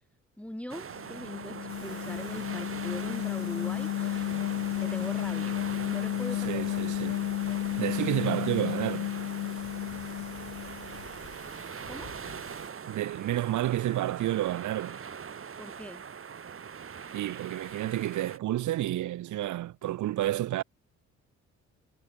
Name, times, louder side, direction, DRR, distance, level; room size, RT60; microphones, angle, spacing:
voice 1, 0.4-4.4 4.7-5.6 5.9-6.7 11.9-12.1 15.6-16.0, equal, 5° left, 0.9 m, -41 dB
sound 1, 0.7-18.4, right 7 dB, 45° right, 4.8 m, -42 dB
sound 2, 0.9-11.1, left 18 dB, 85° left, 0.8 m, -33 dB
Thunder / Rain, 1.7-12.7, left 10 dB, 65° left, 6.2 m, -52 dB
voice 2, 6.5-7.3 7.8-9.1 12.9-15.0 17.1-20.6, right 14 dB, 75° right, 1.4 m, -30 dB
cardioid pair, 90°, 30 cm